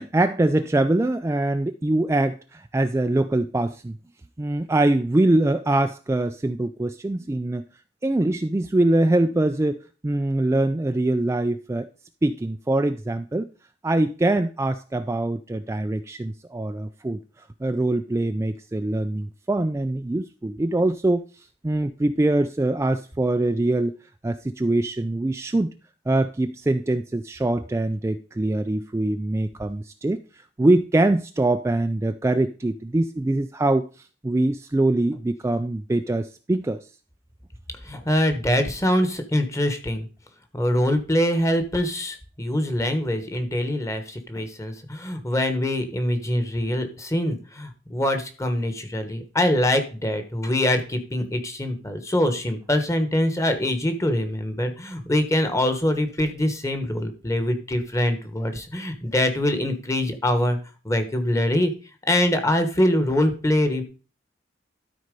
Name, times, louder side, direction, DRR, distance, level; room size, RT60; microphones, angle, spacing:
voice 1, 0.0-4.0 4.4-7.6 8.0-11.9 12.2-13.5 13.8-17.2 17.6-23.9 24.2-25.7 26.1-36.9, right 2 dB, 15° right, 8 dB, 0.3 m, -23 dB
voice 2, 37.8-40.1 40.5-60.6 60.8-61.7 62.1-63.8, left 1 dB, 15° left, 7 dB, 1.2 m, -24 dB
12.5 x 4.3 x 5.2 m, 0.36 s
head